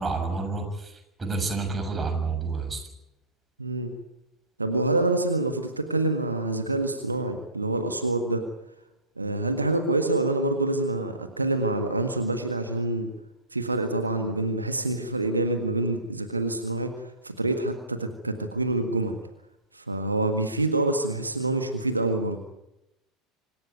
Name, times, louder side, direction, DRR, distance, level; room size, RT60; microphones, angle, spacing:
voice 1, 0.0-2.8, right 4 dB, 20° right, 5 dB, 6.7 m, -29 dB
voice 2, 3.6-3.9 4.6-8.4 9.2-13.1 13.5-19.2 19.7-22.4, right 2 dB, 85° right, 7 dB, 1.7 m, -26 dB
26.0 x 16.0 x 9.4 m, 0.91 s
figure-of-eight pair, 65°, 0 cm